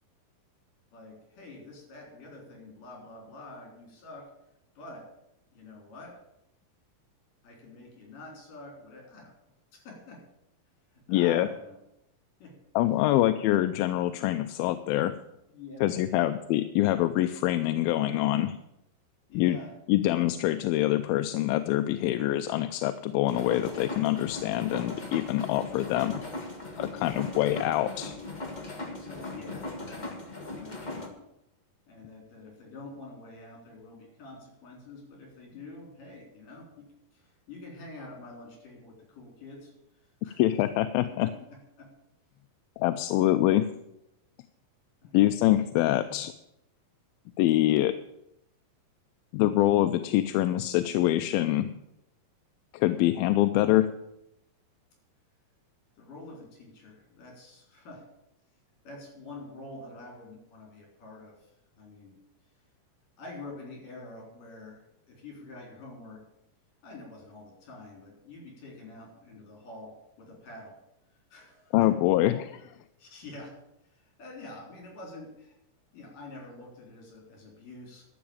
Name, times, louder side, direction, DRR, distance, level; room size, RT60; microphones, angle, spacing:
voice 1, 0.9-4.3 4.8-5.1 5.5-6.2 7.4-9.4 9.7-10.2 10.9-11.8 12.4-12.6 15.5-16.3 19.3-19.7 28.8-30.1 30.4-31.0 31.9-39.7 40.2-40.4 41.2-41.9 45.0-45.2 56.0-58.0 58.9-61.5 61.8-62.2 63.2-66.2 66.8-70.8 71.3-71.9 73.0-73.6 73.9-75.6 75.9-78.1, left 2 dB, 65° left, 1 dB, 5.4 m, -47 dB
voice 2, 11.1-11.5 12.8-15.1 15.8-18.6 19.4-19.6 19.9-26.2 26.8-28.2 40.4-41.3 42.8-43.7 45.1-46.3 47.4-48.0 49.3-51.7 52.7-53.9 71.7-72.7, left 14 dB, 90° left, 9 dB, 2.4 m, -25 dB
sound 1, 23.3-31.1, left 2 dB, 45° left, 0.5 m, -39 dB
12.0 x 7.1 x 8.7 m, 0.83 s
omnidirectional pair, 4.1 m